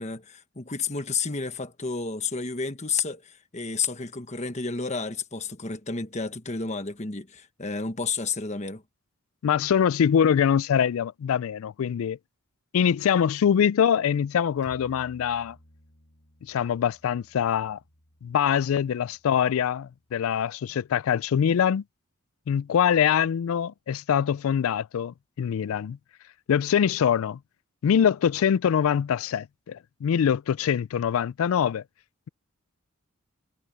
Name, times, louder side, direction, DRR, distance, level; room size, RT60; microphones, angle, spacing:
voice 1, 0.0-8.8, left 5 dB, 30° left, 1.3 m, -31 dB
voice 2, 9.4-12.2 12.7-15.6 16.4-17.8 18.2-21.8 22.5-26.0 26.5-27.4 27.8-31.8, left 8 dB, 75° left, 0.3 m, -24 dB
Bowed string instrument, 14.6-20.2, equal, 55° left, 7.0 m, -56 dB
head